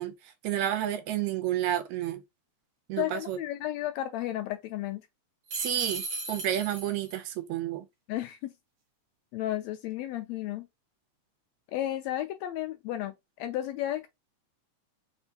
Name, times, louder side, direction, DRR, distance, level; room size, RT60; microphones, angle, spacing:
voice 1, 0.0-2.2 2.9-3.4 5.5-6.0 6.3-7.9, right 12 dB, 80° right, 1.8 m, -30 dB
voice 2, 3.0-5.1 8.1-8.5 9.3-10.7 11.7-14.1, left 13 dB, 80° left, 1.6 m, -33 dB
sound 1, 5.5-7.2, right 3 dB, 55° right, 0.9 m, -36 dB
4.3 x 3.5 x 2.7 m
omnidirectional pair, 3.4 m